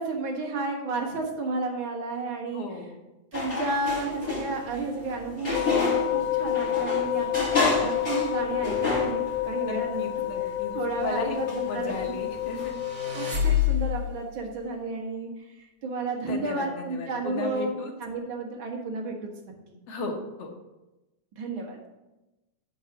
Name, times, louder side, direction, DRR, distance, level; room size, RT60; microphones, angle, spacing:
voice 1, 0.0-2.6 3.3-10.1 10.7-12.2 13.1-15.3 15.6-17.7 18.0-19.2 21.4-21.8, right 3 dB, 50° right, 1 dB, 1.9 m, -32 dB
voice 2, 2.5-3.0 9.6-12.8 16.3-17.9 19.9-20.5, left 3 dB, 60° left, 1 dB, 2.1 m, -36 dB
sound 1, 3.3-12.7, left 3 dB, 20° left, 3.2 m, -32 dB
sound 2, 5.5-13.4, left 13 dB, 90° left, 2.1 m, -29 dB
sound 3, 12.5-14.2, left 10 dB, 30° right, 1.6 m, -27 dB
10.5 x 4.1 x 5.8 m, 1.0 s
omnidirectional pair, 3.3 m